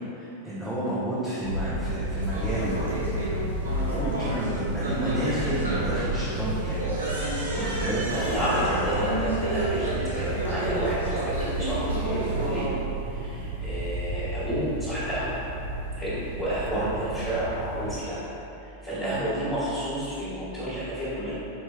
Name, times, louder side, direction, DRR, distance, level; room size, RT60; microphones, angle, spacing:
voice 1, 0.2-2.9 3.6-7.1 7.5-8.0 16.7-16.9 18.9-19.2, right 1 dB, 10° right, -11 dB, 0.8 m, -31 dB
sound 1, 1.4-18.0, right 2 dB, 55° right, 0.3 m, -32 dB
sound 2, 2.2-12.7, right 1 dB, 75° right, 0.7 m, -31 dB
voice 2, 8.1-9.9 10.1-12.7 13.1-15.4 16.0-18.2 18.6-21.3, equal, 10° left, -16 dB, 1.4 m, -31 dB
4.6 x 4.3 x 2.2 m, 2.9 s
figure-of-eight pair, 90°, 0 cm